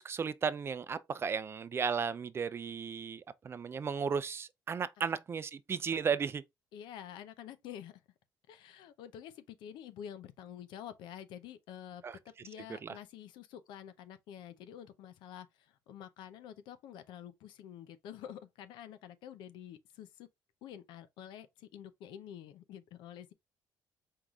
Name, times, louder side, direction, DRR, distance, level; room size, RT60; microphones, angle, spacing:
voice 1, 0.0-6.4 12.0-12.2 12.8-12.9, right 6 dB, 30° right, 0.4 m, -35 dB
voice 2, 6.7-8.0 8.5-20.3 20.6-23.3, left 10 dB, 85° left, 0.6 m, -48 dB
4.6 x 3.9 x 2.4 m
cardioid pair, 115°, 8 cm